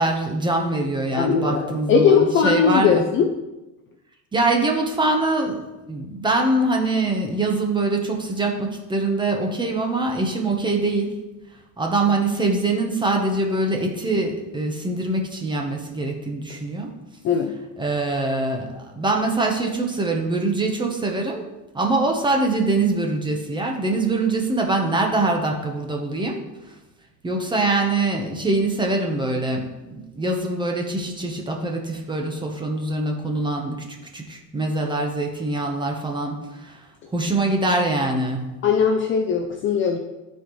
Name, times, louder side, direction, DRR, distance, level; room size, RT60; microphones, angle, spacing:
voice 1, 0.0-3.0 4.3-5.6 5.9-11.1 11.8-16.9 17.8-21.5 21.7-26.4 27.2-33.8 34.1-36.8 37.1-38.4, right 2 dB, 10° right, 2 dB, 1.0 m, -23 dB
voice 2, 1.1-3.3 16.5-16.6 17.2-17.5 38.6-40.0, left 6 dB, 30° left, 3 dB, 0.5 m, -19 dB
12.5 x 4.4 x 3.1 m, 1.0 s
supercardioid pair, 130°, 42 cm